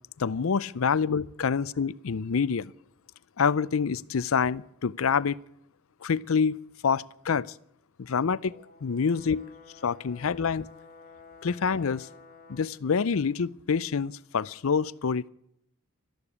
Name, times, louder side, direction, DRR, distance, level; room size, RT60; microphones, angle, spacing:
voice 1, 0.2-2.7 3.4-5.4 6.0-7.5 8.0-8.5 8.8-9.5 9.8-10.7 11.4-12.1 12.5-15.3, left 6 dB, 70° left, 0.5 m, -27 dB
Brass instrument, 8.5-12.7, left 4 dB, 40° left, 1.7 m, -51 dB
13.5 x 12.0 x 8.5 m
head